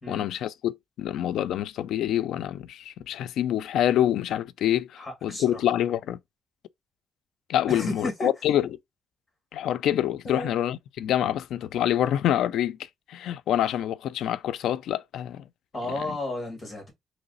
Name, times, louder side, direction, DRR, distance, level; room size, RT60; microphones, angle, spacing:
voice 1, 0.1-6.2 7.5-8.7 9.5-12.8 13.1-15.5 16.1-16.2, left 11 dB, 90° left, 0.4 m, -26 dB
voice 2, 5.0-5.6 7.7-8.3 10.2-10.5 15.7-16.9, left 1 dB, 15° left, 2.3 m, -33 dB
3.9 x 3.2 x 3.9 m
cardioid pair, 175°, 0 cm